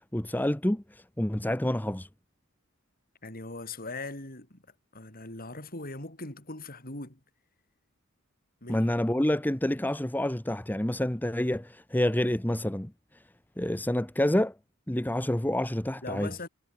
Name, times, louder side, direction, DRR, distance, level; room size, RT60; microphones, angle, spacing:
voice 1, 0.1-2.1 8.7-12.9 13.6-14.5 14.9-16.3, left 1 dB, 10° left, 0.9 m, -28 dB
voice 2, 3.2-4.6 4.9-7.2 8.6-8.9 16.0-16.5, left 2 dB, 45° left, 7.4 m, -40 dB
head